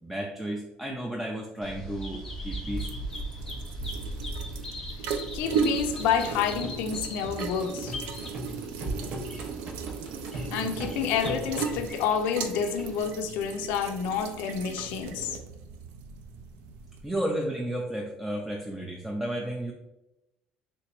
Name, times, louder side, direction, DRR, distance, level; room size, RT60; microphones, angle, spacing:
voice 1, 0.0-2.9 10.6-10.9 17.0-19.7, right 1 dB, 5° right, 0.3 m, -33 dB
Bird vocalization bird call bird song, 1.6-13.0, equal, 15° left, 0.7 m, -40 dB
sound 1, 2.1-17.2, right 6 dB, 85° right, 0.4 m, -36 dB
voice 2, 5.3-7.9 10.5-15.4, left 7 dB, 80° left, 0.4 m, -29 dB
sound 2, 5.4-11.8, right 1 dB, 45° right, 0.9 m, -39 dB
3.4 x 2.9 x 2.9 m
cardioid pair, 155°, 3 cm